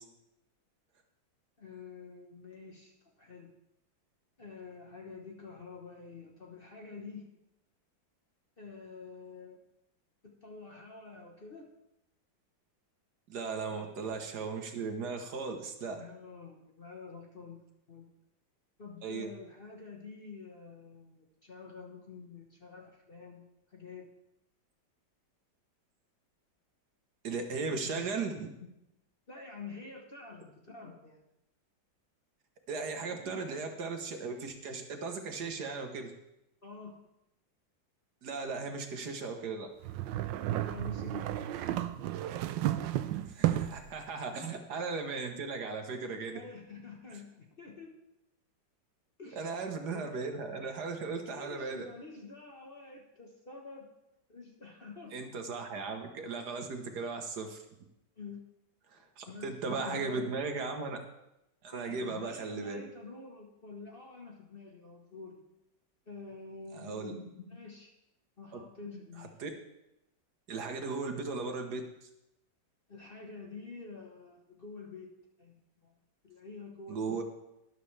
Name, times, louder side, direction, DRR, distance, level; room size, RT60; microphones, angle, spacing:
voice 1, 1.6-3.5 4.4-7.3 8.6-9.6 10.2-11.7 13.7-14.2 15.9-18.1 18.8-24.1 27.6-28.1 28.6-28.7 29.3-31.2 33.2-33.4 36.6-37.0 40.5-41.3 44.3-44.6 46.3-47.9 49.2-50.2 51.2-53.9 54.3-55.2 58.2-58.4 59.3-60.4 61.7-65.4 66.1-67.9 68.4-69.3 72.9-75.1 75.4-75.9 76.2-77.2, left 4 dB, 35° left, 0 dB, 1.1 m, -48 dB
voice 2, 13.3-16.0 19.0-19.3 27.2-28.4 32.7-36.1 38.2-39.7 43.3-46.4 49.4-51.8 55.1-57.6 58.9-61.0 61.6-62.8 66.7-67.1 69.2-69.5 70.5-71.9 76.9-77.2, right 4 dB, 60° right, 5 dB, 1.6 m, -37 dB
sound 1, 39.8-43.9, right 13 dB, 80° right, 1.3 m, -32 dB
12.5 x 11.5 x 3.3 m, 0.86 s
omnidirectional pair, 2.0 m